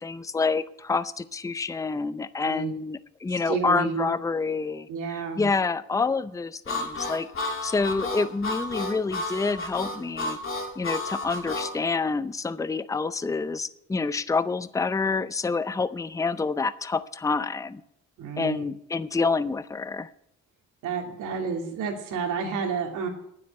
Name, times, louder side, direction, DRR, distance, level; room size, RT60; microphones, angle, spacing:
voice 1, 0.0-10.4 10.8-17.8 18.4-20.1, left 4 dB, 10° left, 15 dB, 0.5 m, -28 dB
voice 2, 2.4-2.7 3.3-4.1 4.9-5.4 18.2-18.6 20.8-23.1, right 5 dB, 85° right, 2 dB, 2.7 m, -30 dB
Harmonica, 6.7-11.7, left 2 dB, 45° left, 3.1 m, -32 dB
9.5 x 7.8 x 9.0 m, 0.75 s
cardioid pair, 90°, 30 cm